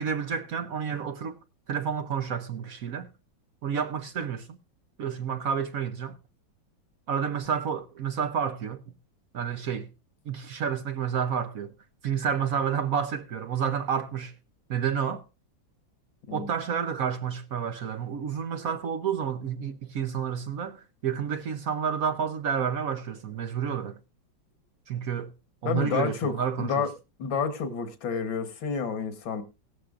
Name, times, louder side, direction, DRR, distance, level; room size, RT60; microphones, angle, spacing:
voice 1, 0.0-1.4 1.7-3.1 3.6-4.5 5.0-6.1 7.1-8.8 9.3-9.9 10.3-11.7 12.0-14.3 14.7-15.2 16.3-24.0 24.9-25.3 25.6-26.9, right 7 dB, 60° right, 1.0 m, -30 dB
voice 2, 25.7-26.9 27.2-29.4, left 6 dB, 80° left, 2.1 m, -29 dB
16.5 x 12.5 x 2.5 m
omnidirectional pair, 2.1 m